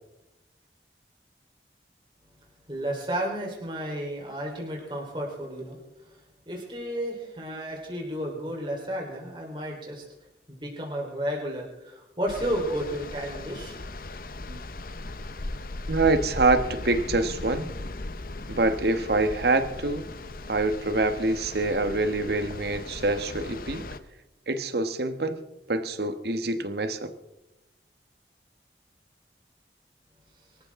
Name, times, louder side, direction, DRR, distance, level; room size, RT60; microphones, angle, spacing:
voice 1, 2.7-5.8 6.5-10.0 10.5-13.8, equal, 25° right, -1 dB, 4.0 m, -32 dB
sound 1, 12.3-24.0, left 2 dB, 55° left, 0.8 m, -37 dB
voice 2, 15.9-17.7 18.5-20.0 20.5-23.9 24.5-25.4 25.7-27.1, right 2 dB, 65° right, 9 dB, 1.3 m, -25 dB
24.5 x 14.0 x 3.7 m, 0.92 s
head